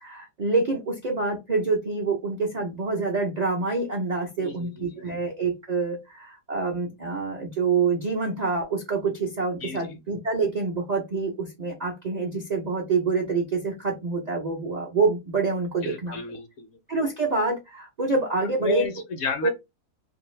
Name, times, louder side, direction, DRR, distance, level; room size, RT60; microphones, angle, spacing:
voice 1, 0.0-16.2 16.9-18.9 19.4-19.5, right 4 dB, 55° right, 0.4 m, -26 dB
voice 2, 4.4-5.0 9.6-9.8 15.8-16.7 18.6-19.5, left 4 dB, 65° left, 0.8 m, -32 dB
2.6 x 2.4 x 3.1 m
omnidirectional pair, 1.6 m